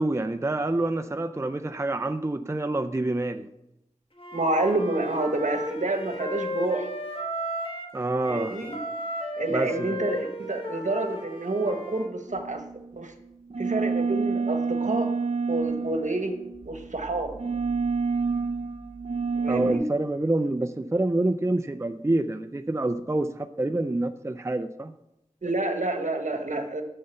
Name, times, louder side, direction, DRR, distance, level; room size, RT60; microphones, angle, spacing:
voice 1, 0.0-3.5 7.9-8.6 9.5-10.0 19.5-24.9, right 2 dB, 20° right, 9 dB, 0.4 m, -27 dB
Wind instrument woodwind instrument, 4.2-7.9 8.2-12.1, equal, 45° left, 1.6 m, -34 dB
voice 2, 4.3-6.9 8.3-8.8 9.4-12.6 13.0-13.1 13.6-15.1 15.5-16.3 16.6-17.3 19.4-19.8 25.4-26.8, right 2 dB, 70° right, 6 dB, 1.2 m, -28 dB
sound 1, 12.3-13.0 13.5-19.7, right 4 dB, 50° right, 0.8 m, -29 dB
6.7 x 6.6 x 6.9 m, 0.86 s
wide cardioid pair, 50°, 13 cm